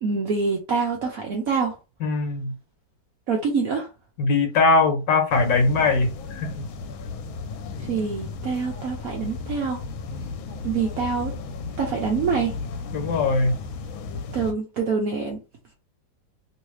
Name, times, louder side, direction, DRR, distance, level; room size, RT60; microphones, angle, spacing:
voice 1, 0.0-1.8 3.3-3.9 7.8-9.8 10.6-11.3 11.8-12.5 14.3-15.4, right 5 dB, 65° right, 0.8 m, -25 dB
voice 2, 2.0-2.5 4.2-6.5 12.9-13.6, left 3 dB, 70° left, 1.4 m, -21 dB
sound 1, 5.3-14.5, left 4 dB, 85° left, 1.4 m, -35 dB
3.1 x 2.7 x 3.1 m
omnidirectional pair, 2.2 m